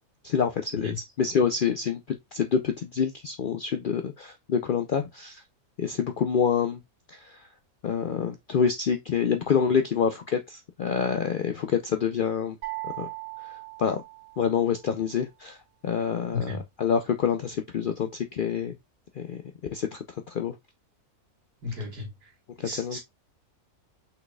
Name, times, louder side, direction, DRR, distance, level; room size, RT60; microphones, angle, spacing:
voice 1, 0.2-5.4 5.8-6.8 7.1-7.5 7.8-12.6 13.0-13.1 13.4-14.0 14.4-15.6 15.8-18.8 19.2-19.4 19.7-20.6 22.6-23.0, left 7 dB, 85° left, 0.4 m, -27 dB
sound 1, 12.6-14.8, right 22 dB, 40° right, 2.7 m, -38 dB
voice 2, 21.6-22.3 22.6-23.0, left 4 dB, 85° right, 2.2 m, -33 dB
5.6 x 4.0 x 2.3 m
omnidirectional pair, 1.6 m